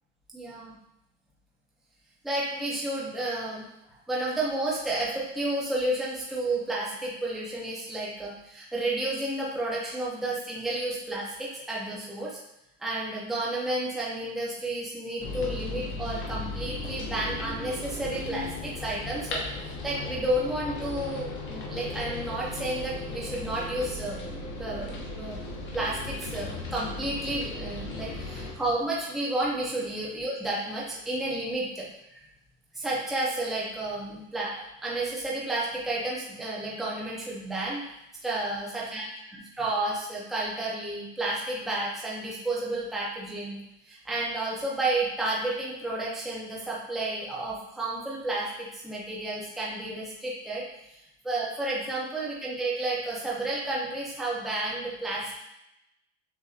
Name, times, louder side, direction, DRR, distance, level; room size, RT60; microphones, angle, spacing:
voice 1, 0.3-0.7 2.2-3.7 4.1-12.4 12.8-24.2 24.6-25.4 25.7-32.2 32.7-37.8 38.2-43.6 43.9-50.6 50.9-55.4, right 2 dB, ahead, -6 dB, 0.7 m, -31 dB
sound 1, 15.2-28.5, left 2 dB, 35° left, 0.9 m, -36 dB
6.7 x 2.8 x 2.4 m, 0.87 s
cardioid pair, 155°, 36 cm